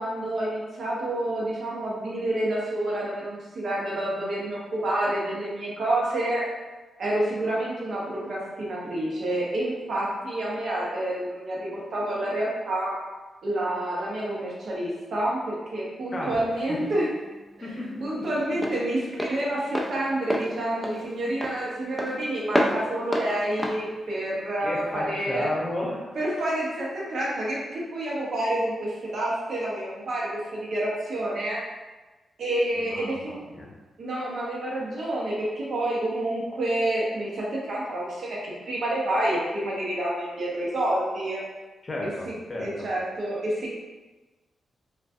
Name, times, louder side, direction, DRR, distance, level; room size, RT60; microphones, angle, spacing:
voice 1, 0.0-6.4 7.0-13.0 13.4-17.1 17.6-17.7 18.0-25.5 26.1-31.6 32.4-33.3 34.0-41.4 42.0-42.1 42.6-43.8, right 1 dB, 70° right, -5 dB, 0.7 m, -28 dB
Walk footsteps, 16.3-25.0, equal, ahead, 0.3 m, -31 dB
voice 2, 17.6-18.6 24.6-26.2 32.7-33.7 41.8-42.9, left 1 dB, 35° left, -3 dB, 0.6 m, -33 dB
2.5 x 2.2 x 2.3 m, 1.2 s
cardioid pair, 70°, 0 cm